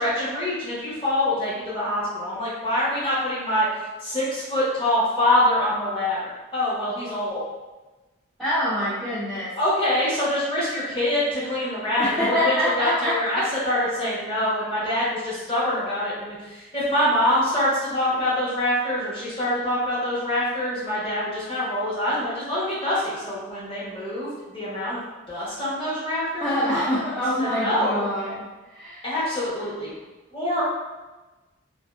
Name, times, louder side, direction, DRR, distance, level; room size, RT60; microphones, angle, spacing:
voice 1, 0.0-7.4 9.6-25.0 25.3-27.0 27.4-28.0 29.0-29.9 30.3-30.6, left 1 dB, 25° left, -8 dB, 0.8 m, -25 dB
voice 2, 8.4-9.5 12.0-13.4 26.4-29.0, equal, ahead, -12 dB, 0.3 m, -25 dB
2.5 x 2.3 x 2.2 m, 1.2 s
head